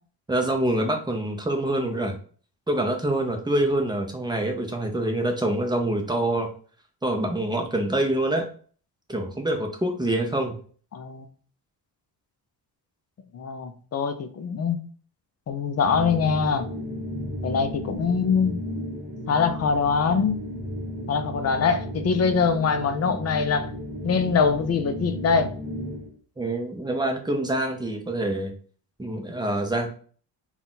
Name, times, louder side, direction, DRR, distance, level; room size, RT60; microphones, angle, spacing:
voice 1, 0.3-2.1 2.7-6.5 7.0-8.5 9.1-10.5 26.4-28.5 29.0-29.9, right 1 dB, 10° right, 0.6 m, -25 dB
voice 2, 10.9-11.2 13.3-14.8 15.5-16.7 17.4-18.6 19.3-20.4 21.1-23.7 24.0-25.5, left 5 dB, 40° left, 0.5 m, -23 dB
sound 1, 15.7-26.1, equal, 25° right, 1.1 m, -34 dB
4.0 x 2.4 x 3.7 m
cardioid pair, 150°, 42 cm